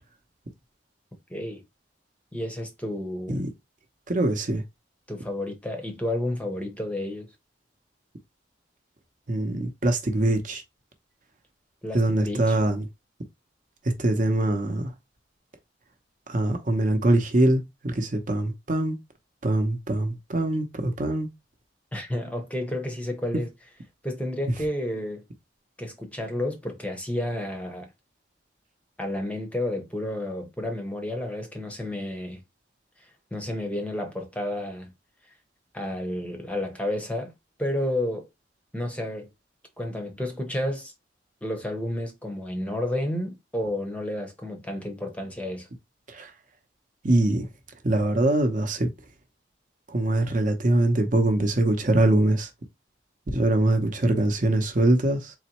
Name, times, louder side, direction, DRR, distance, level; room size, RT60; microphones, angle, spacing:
voice 1, 1.3-1.6 2.3-3.4 5.1-7.3 11.8-12.6 21.9-23.5 24.0-25.2 25.8-27.9 29.0-32.4 33.3-34.9 35.7-37.3 37.6-38.3 38.7-39.3 39.8-40.9 41.4-45.7, left 1 dB, 5° left, 0.8 m, -31 dB
voice 2, 4.1-4.6 9.3-10.6 11.9-12.8 13.8-14.9 16.3-19.0 19.4-21.3 46.1-46.3 47.0-47.5 47.8-48.9 49.9-52.5 53.3-55.3, right 1 dB, 45° right, 0.8 m, -23 dB
4.0 x 3.1 x 3.0 m
head